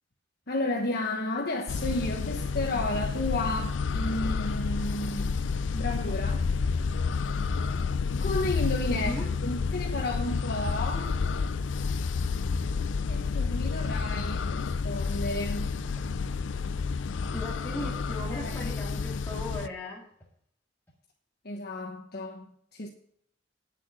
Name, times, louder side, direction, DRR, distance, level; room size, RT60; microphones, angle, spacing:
voice 1, 0.5-5.4 5.7-6.4 8.2-9.1 9.4-11.1 13.1-15.7 18.2-18.8 21.4-22.4 22.7-22.9, left 2 dB, 55° left, 1.2 m, -32 dB
sound 1, 1.7-19.7, left 5 dB, 85° left, 0.5 m, -30 dB
voice 2, 8.9-9.3 10.3-10.4 17.3-20.0, left 1 dB, 10° left, 2.0 m, -38 dB
10.5 x 7.3 x 6.6 m
head